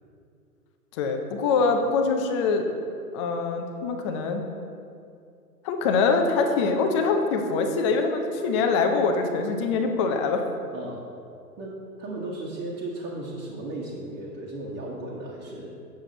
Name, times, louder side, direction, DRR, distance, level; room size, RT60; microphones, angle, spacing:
voice 1, 0.9-2.7 3.1-4.5 5.6-10.4, left 4 dB, 20° left, 4 dB, 0.4 m, -24 dB
voice 2, 12.0-15.7, right 2 dB, 30° right, -6 dB, 1.4 m, -35 dB
7.7 x 7.2 x 3.9 m, 2.4 s
figure-of-eight pair, 115°, 47 cm